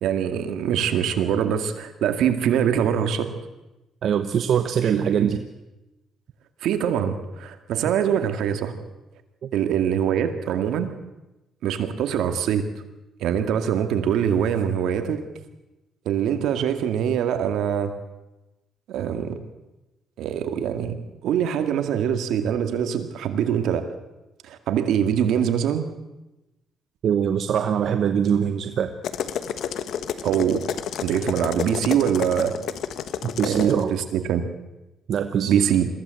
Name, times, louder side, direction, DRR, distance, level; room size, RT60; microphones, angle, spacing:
voice 1, 0.0-3.3 4.8-5.3 6.6-8.7 9.5-10.9 11.6-12.6 13.2-15.2 16.1-17.9 18.9-19.4 20.2-21.0 21.2-23.8 24.4-25.9 30.2-30.6 31.0-32.6 33.4-34.4 35.5-35.9, right 9 dB, 80° right, 7 dB, 2.1 m, -23 dB
voice 2, 4.0-5.4 9.4-9.5 27.0-28.9 33.2-34.0 35.1-35.7, right 8 dB, 65° right, 8 dB, 1.0 m, -23 dB
sound 1, 29.0-33.8, left 9 dB, 75° left, 1.3 m, -30 dB
22.0 x 15.5 x 7.8 m, 1.0 s
cardioid pair, 90°, 0 cm